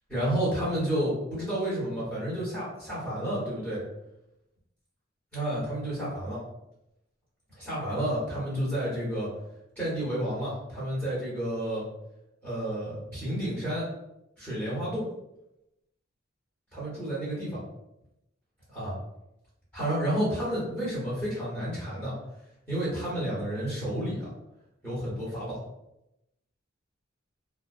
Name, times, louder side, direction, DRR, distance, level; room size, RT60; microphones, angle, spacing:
voice 1, 0.1-3.8 5.3-6.4 7.5-9.3 9.8-11.8 12.4-13.9 14.4-15.0 16.7-17.6 18.7-18.9 19.7-22.1 22.7-24.3 24.8-25.6, right 1 dB, 10° left, -9 dB, 1.2 m, -30 dB
2.4 x 2.2 x 2.4 m, 0.86 s
head